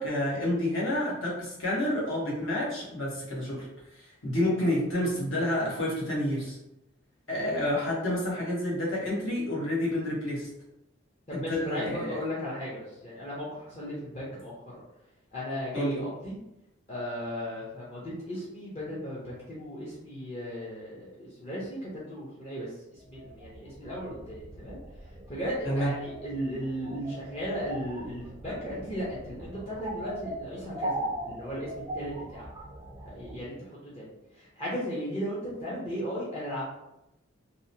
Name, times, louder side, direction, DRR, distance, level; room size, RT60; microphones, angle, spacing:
voice 1, 0.0-3.7 3.9-6.6 7.3-10.5 11.3-12.2 15.7-16.0 25.6-25.9, left 1 dB, 80° left, -5 dB, 1.1 m, -29 dB
voice 2, 11.3-14.8 15.3-16.4 16.9-24.8 25.3-32.5 33.0-34.1 34.3-36.6, equal, 30° left, -8 dB, 0.6 m, -36 dB
sound 1, 23.0-33.4, right 1 dB, 20° right, 0.3 m, -40 dB
2.8 x 2.1 x 2.6 m, 0.89 s
head